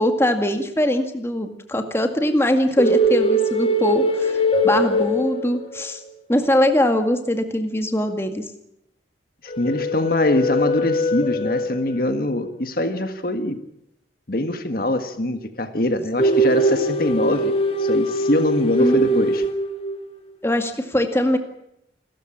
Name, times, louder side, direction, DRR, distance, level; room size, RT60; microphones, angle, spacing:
voice 1, 0.0-6.0 6.3-8.4 18.8-19.3 20.4-21.4, left 1 dB, 15° left, 6 dB, 2.0 m, -21 dB
sound 1, 2.8-6.0 9.5-12.1 16.2-20.0, equal, 30° left, 2.1 m, -21 dB
voice 2, 9.4-13.6 14.3-17.5 17.8-19.4, left 1 dB, 50° left, 8 dB, 1.7 m, -23 dB
28.5 x 14.0 x 8.7 m, 0.81 s
head